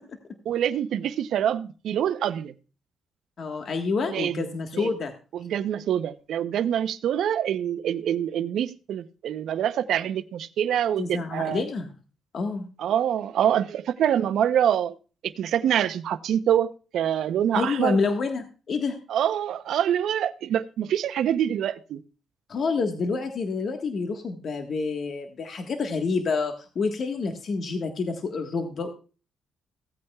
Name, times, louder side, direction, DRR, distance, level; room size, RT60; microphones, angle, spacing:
voice 1, 0.4-2.5 4.1-4.5 4.7-4.9 5.3-11.6 12.8-14.9 15.2-18.0 19.1-22.0, right 10 dB, 75° right, 0.7 m, -25 dB
voice 2, 3.4-5.1 11.0-11.9 12.3-12.7 17.5-19.0 22.5-28.9, left 4 dB, 50° left, 1.4 m, -28 dB
16.0 x 8.6 x 2.3 m
cardioid pair, 90°, 0 cm